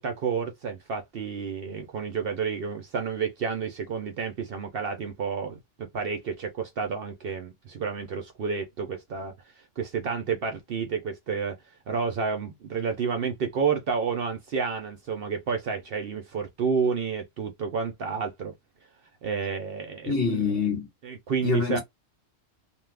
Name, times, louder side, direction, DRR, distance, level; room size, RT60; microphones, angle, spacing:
voice 1, 0.0-9.3 9.8-11.6 11.9-18.5 19.2-20.2 21.0-21.8, right 5 dB, 60° right, 0.7 m, -30 dB
voice 2, 20.0-20.9 21.4-21.8, left 5 dB, 50° left, 1.5 m, -25 dB
2.5 x 2.3 x 3.3 m
omnidirectional pair, 1.3 m